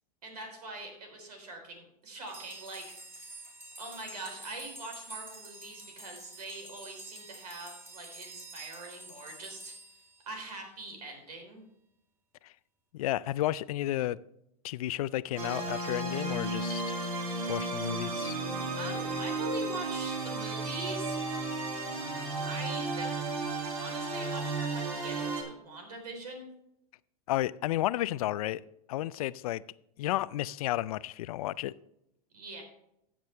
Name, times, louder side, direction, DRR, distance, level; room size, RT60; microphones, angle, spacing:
voice 1, 0.2-3.3 3.8-9.8 10.3-11.6 18.8-21.5 22.4-23.1 23.8-26.5 32.3-32.6, right 2 dB, 85° right, 3.8 m, -43 dB
sound 1, 2.3-10.8, right 2 dB, 10° right, 2.9 m, -48 dB
voice 2, 12.9-14.2 14.6-17.0 17.5-18.4 27.3-28.6 28.9-29.6 30.0-31.7, left 15 dB, 70° left, 0.4 m, -32 dB
sound 2, 15.4-25.4, right 2 dB, 65° right, 3.2 m, -34 dB
14.5 x 7.4 x 3.3 m
hypercardioid pair, 115°, 20 cm